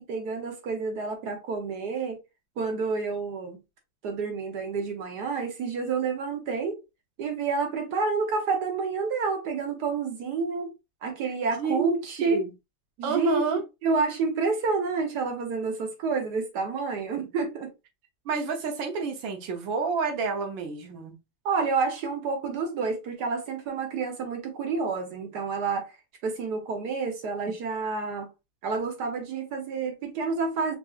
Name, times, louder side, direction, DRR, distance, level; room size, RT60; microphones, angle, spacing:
voice 1, 0.0-2.2 2.6-3.6 4.0-6.8 7.2-10.7 11.0-12.4 13.0-13.4 13.8-17.7 21.4-25.9 26.2-28.3 28.6-30.7, right 4 dB, 65° right, 1.4 m, -29 dB
voice 2, 11.6-12.5 13.0-13.6 18.2-21.1, right 5 dB, 90° right, 1.6 m, -29 dB
4.8 x 2.6 x 2.4 m
omnidirectional pair, 2.0 m